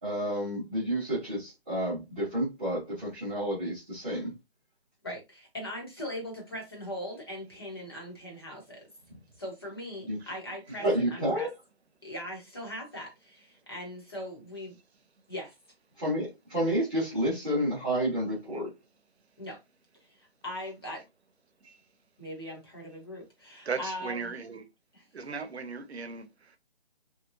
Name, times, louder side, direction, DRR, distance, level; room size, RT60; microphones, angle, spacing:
voice 1, 0.0-4.4 10.1-10.2 10.8-11.5 16.0-18.7, right 1 dB, 10° right, 1.0 m, -30 dB
voice 2, 5.0-8.8 9.4-11.5 12.0-14.8 15.3-15.5 19.4-19.6 20.0-21.0 22.2-24.3 24.9-25.0, left 1 dB, 25° left, 0.9 m, -40 dB
voice 3, 23.6-24.7 25.1-26.6, right 5 dB, 85° right, 0.9 m, -37 dB
3.0 x 3.0 x 2.5 m
hypercardioid pair, 175°, 31 cm